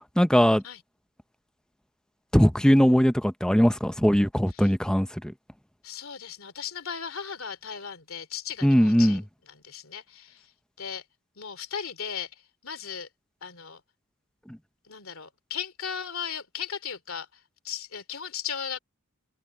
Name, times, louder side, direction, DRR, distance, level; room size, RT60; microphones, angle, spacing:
voice 1, 0.2-0.6 2.3-5.1 8.6-9.2, equal, 5° left, 0.7 m, -20 dB
voice 2, 5.8-10.5 10.8-11.0 11.4-12.3 12.6-13.1 13.4-13.8 14.9-17.3 17.6-18.8, left 7 dB, 70° left, 2.9 m, -36 dB
head